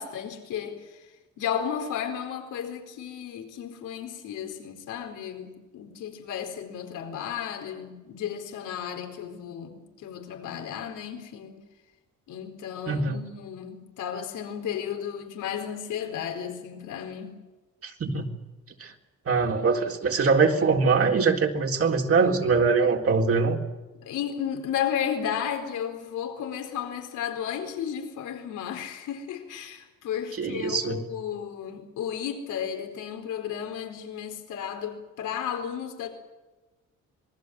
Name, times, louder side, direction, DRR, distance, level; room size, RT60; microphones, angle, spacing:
voice 1, 0.0-11.6 12.3-17.4 24.0-36.1, left 8 dB, 85° left, 4.4 m, -33 dB
voice 2, 12.9-13.2 17.8-18.3 18.8-18.9 19.3-23.6 30.4-31.0, right 4 dB, 50° right, 3.9 m, -23 dB
26.5 x 20.5 x 7.9 m
cardioid pair, 90°, 30 cm